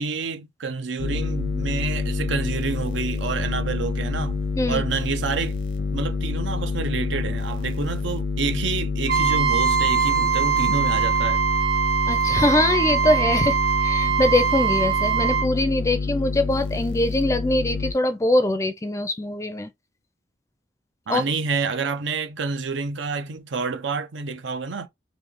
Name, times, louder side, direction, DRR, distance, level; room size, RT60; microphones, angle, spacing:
voice 1, 0.0-4.4 4.7-5.6 5.9-11.4 21.1-24.9, right 4 dB, 80° right, 0.6 m, -28 dB
sound 1, 1.0-17.9, left 4 dB, 80° left, 0.8 m, -28 dB
Trumpet, 9.1-15.5, right 8 dB, 55° right, 1.7 m, -22 dB
voice 2, 12.1-19.7 21.1-21.2, left 1 dB, 15° left, 0.5 m, -22 dB
3.2 x 2.8 x 3.6 m
head